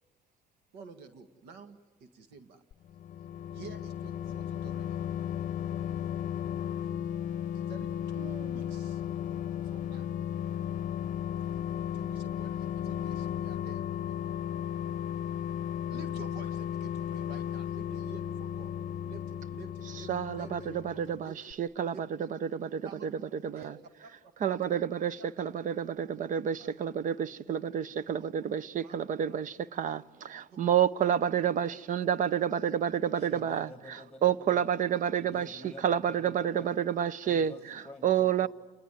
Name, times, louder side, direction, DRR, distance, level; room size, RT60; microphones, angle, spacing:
voice 1, 0.7-2.6 3.5-5.0 6.8-7.1 7.5-9.0 9.6-10.1 11.9-14.2 15.9-18.7 19.0-21.4 21.9-22.0 22.8-23.1 23.5-24.1 24.4-24.6 25.2-25.5 26.6-26.7 28.2-28.3 28.8-29.0 29.3-29.4 30.5-30.6 31.6-31.8 33.3-33.4 35.6-35.7, right 4 dB, 85° right, 1.8 m, -50 dB
sound 1, 2.7-21.2 21.5-21.6, left 9 dB, 50° left, 0.7 m, -35 dB
voice 2, 19.9-23.7 24.4-33.7 34.2-37.5 38.0-38.5, right 9 dB, 50° right, 0.8 m, -29 dB
voice 3, 33.1-34.8 35.2-36.8 37.2-38.5, left 2 dB, 5° left, 2.2 m, -49 dB
29.5 x 21.0 x 9.2 m
cardioid pair, 110°, 17 cm